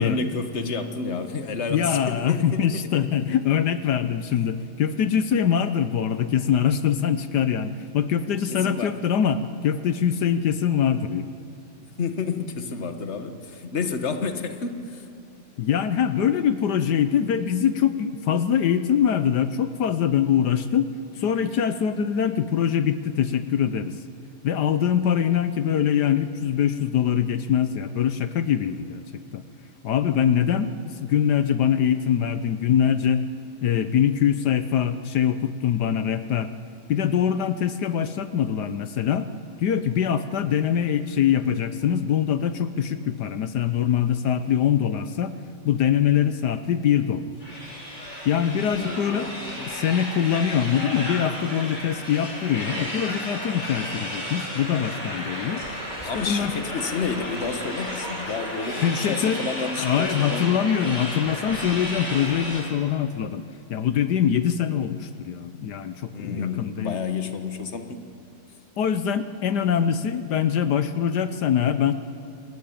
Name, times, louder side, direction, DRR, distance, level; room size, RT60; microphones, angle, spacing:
voice 1, 0.0-2.8 8.5-9.0 12.0-15.1 48.8-49.7 56.1-60.5 66.1-68.0, left 5 dB, 40° left, 7 dB, 1.6 m, -30 dB
voice 2, 1.7-11.2 15.6-20.9 21.2-23.9 24.4-29.0 29.3-29.4 29.8-33.3 33.6-36.5 36.9-39.3 39.6-45.3 45.6-47.2 48.2-49.3 49.7-55.6 56.1-56.5 58.8-59.4 59.8-63.4 63.7-67.0 68.8-71.9, left 8 dB, 70° left, 11 dB, 1.4 m, -23 dB
sound 1, 47.4-62.6, equal, 25° left, 5.0 m, -33 dB
27.0 x 20.5 x 9.1 m, 2.5 s
omnidirectional pair, 1.9 m